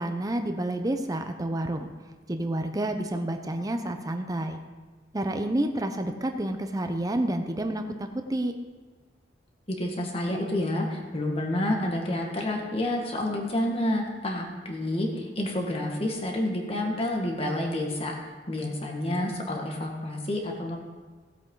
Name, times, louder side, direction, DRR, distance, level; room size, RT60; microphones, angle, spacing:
voice 1, 0.0-1.9 2.3-4.6 5.1-8.5, right 1 dB, 20° right, 6 dB, 0.8 m, -29 dB
voice 2, 9.7-18.1 18.5-20.8, left 1 dB, 35° left, 0 dB, 1.9 m, -29 dB
17.0 x 8.0 x 3.9 m, 1.3 s
head